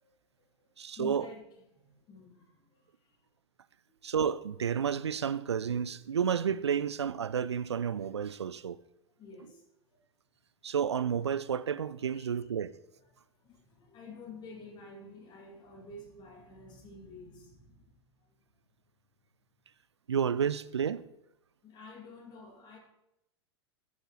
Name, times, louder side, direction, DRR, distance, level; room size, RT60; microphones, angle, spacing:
voice 1, 0.0-3.3 3.9-4.1 9.2-10.0 12.1-12.5 13.0-18.6 21.6-22.8, left 3 dB, 30° left, 2.3 m, -51 dB
voice 2, 0.8-1.3 4.0-8.8 10.6-12.7 20.1-21.1, right 7 dB, 75° right, 0.4 m, -31 dB
13.5 x 7.1 x 3.0 m
figure-of-eight pair, 90°, 14 cm